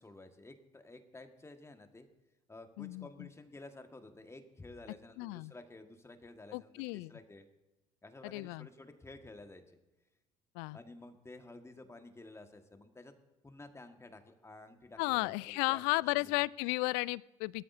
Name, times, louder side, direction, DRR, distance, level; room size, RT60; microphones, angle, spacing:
voice 1, 0.0-2.1 2.5-7.5 8.0-9.8 10.7-13.1 13.4-16.3, left 2 dB, 15° left, 7 dB, 1.7 m, -52 dB
voice 2, 2.8-3.3 5.2-5.5 6.5-7.1 8.2-8.7 10.6-10.8 15.0-17.6, left 24 dB, 60° left, 23 dB, 0.4 m, -34 dB
22.0 x 13.0 x 2.7 m, 1.0 s
figure-of-eight pair, 60°, 18 cm